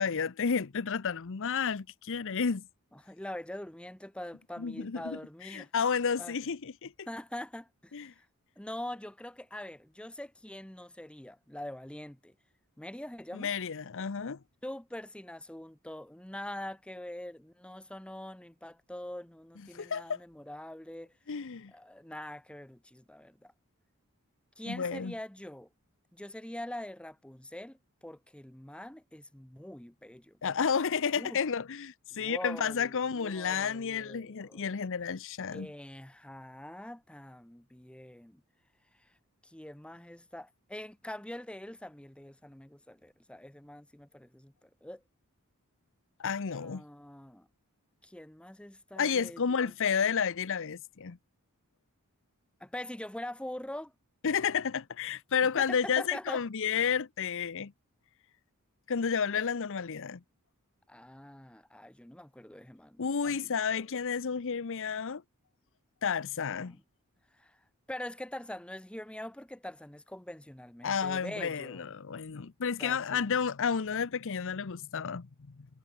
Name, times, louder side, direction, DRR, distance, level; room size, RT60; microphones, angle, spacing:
voice 1, 0.0-2.6 4.6-5.2 5.5-6.9 7.9-8.1 13.3-14.4 19.7-20.2 21.3-21.7 24.7-25.1 30.4-35.7 46.2-46.8 49.0-51.2 54.2-57.7 58.9-60.2 63.0-65.2 66.0-66.8 70.8-75.7, left 6 dB, 65° left, 0.7 m, -31 dB
voice 2, 2.9-5.7 6.2-6.3 7.1-8.3 8.6-12.4 12.8-13.5 14.6-21.1 21.7-23.5 24.6-25.7 26.1-30.4 31.1-31.4 32.1-34.7 35.5-38.4 39.0-39.1 39.4-45.0 46.5-47.5 48.0-49.7 52.6-53.9 55.6-56.4 60.9-63.8 66.6-66.8 67.3-67.6 67.9-71.9 72.8-73.3, left 1 dB, 5° left, 0.8 m, -44 dB
head